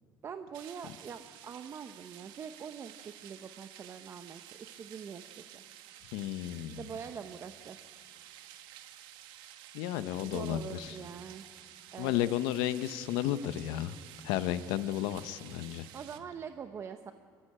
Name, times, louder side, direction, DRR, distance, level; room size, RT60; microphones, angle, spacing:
voice 1, 0.2-5.6 6.7-7.8 10.2-11.5 11.9-12.1 15.9-17.1, right 7 dB, 35° right, 8 dB, 0.8 m, -44 dB
sound 1, 0.5-16.2, right 12 dB, 75° right, 1.4 m, -52 dB
voice 2, 6.1-6.8 9.7-10.9 12.0-13.9 14.2-15.9, left 12 dB, 85° left, 13 dB, 0.9 m, -33 dB
24.0 x 14.5 x 8.8 m, 2.2 s
cardioid pair, 130°, 8 cm